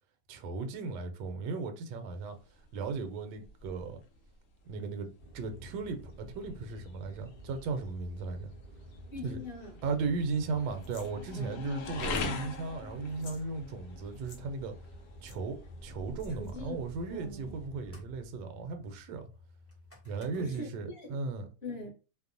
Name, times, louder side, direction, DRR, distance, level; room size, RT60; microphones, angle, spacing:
voice 1, 0.3-2.4 2.7-4.0 4.7-8.5 9.2-9.4 9.8-14.7 15.2-19.3 20.0-21.5, right 4 dB, 75° right, 1.2 m, -36 dB
sound 1, 2.2-17.7, left 3 dB, 85° left, 0.7 m, -44 dB
sound 2, 5.2-20.6, equal, 15° left, 0.5 m, -51 dB
voice 2, 9.1-9.8 11.3-11.6 16.4-16.8 17.1-17.5 20.4-21.1 21.6-21.9, left 2 dB, 45° left, 0.9 m, -42 dB
sound 3, 10.8-11.1 12.0-12.4 12.6-12.7 13.1-13.4 14.1-14.4 15.2-15.4 16.2-16.5, left 5 dB, 70° left, 1.0 m, -54 dB
2.9 x 2.1 x 2.5 m
omnidirectional pair, 1.9 m